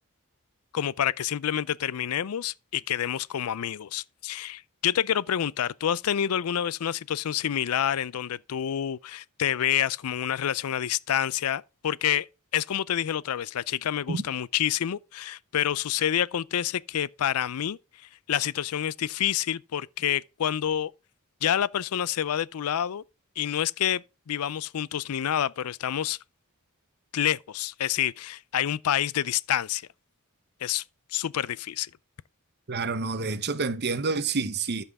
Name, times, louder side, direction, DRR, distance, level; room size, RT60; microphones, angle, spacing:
voice 1, 0.7-12.3 12.5-20.9 21.4-23.0 23.4-26.2 27.1-29.8 30.6-30.8 31.1-31.9, left 10 dB, 80° left, 0.4 m, -28 dB
voice 2, 32.7-34.8, right 4 dB, 50° right, 0.9 m, -28 dB
13.5 x 5.7 x 3.6 m
head